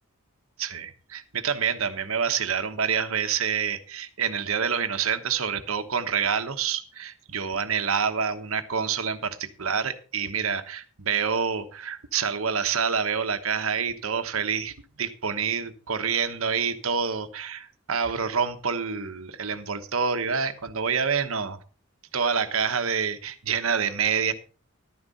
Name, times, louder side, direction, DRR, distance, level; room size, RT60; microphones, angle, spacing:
voice 1, 0.6-21.6 22.1-24.3, right 6 dB, 70° right, 9 dB, 1.1 m, -27 dB
12.0 x 10.0 x 4.1 m, 0.37 s
head